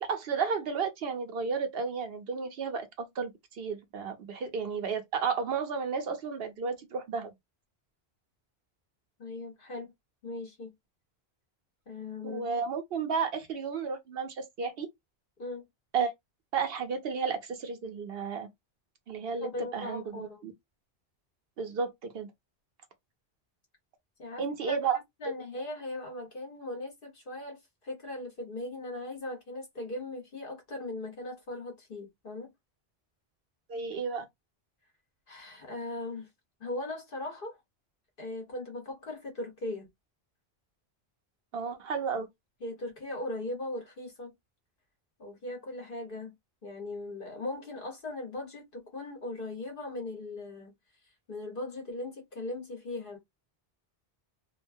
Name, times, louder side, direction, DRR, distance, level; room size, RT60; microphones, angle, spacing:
voice 1, 0.0-7.3 12.2-14.9 15.9-16.1 16.5-18.5 19.1-20.5 21.6-22.3 24.4-25.0 33.7-34.3 41.5-42.3, right 5 dB, 70° right, 0.9 m, -32 dB
voice 2, 9.2-9.9 10.2-10.7 11.9-12.5 15.4-15.7 19.4-20.4 24.2-24.8 25.2-27.6 27.8-32.5 35.3-36.3 36.6-37.6 38.2-39.9 42.6-44.3 45.2-46.3 46.6-50.7 51.3-53.2, left 2 dB, 60° left, 1.3 m, -39 dB
2.9 x 2.2 x 2.6 m
omnidirectional pair, 1.0 m